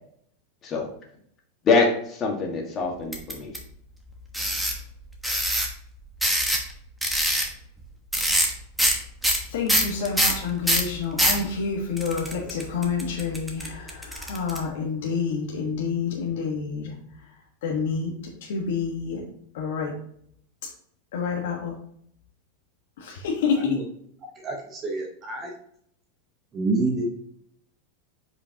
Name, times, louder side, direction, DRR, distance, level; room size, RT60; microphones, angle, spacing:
voice 1, 1.6-3.5, left 4 dB, 30° left, 0 dB, 1.7 m, -24 dB
sound 1, 3.1-3.6 4.3-4.8 5.2-5.7 6.2-6.7 7.0-7.5 8.1-8.5 8.8-9.0 9.2-11.4 12.0-14.6, equal, ahead, 1.2 m, -23 dB
voice 2, 9.5-19.2 19.5-19.9 20.6-20.7 21.1-21.7 23.0-23.9, left 5 dB, 80° left, -2 dB, 1.3 m, -28 dB
voice 3, 24.4-25.5 26.5-27.1, right 2 dB, 25° right, 0 dB, 1.1 m, -27 dB
8.2 x 5.1 x 2.9 m, 0.67 s
supercardioid pair, 145°, 0 cm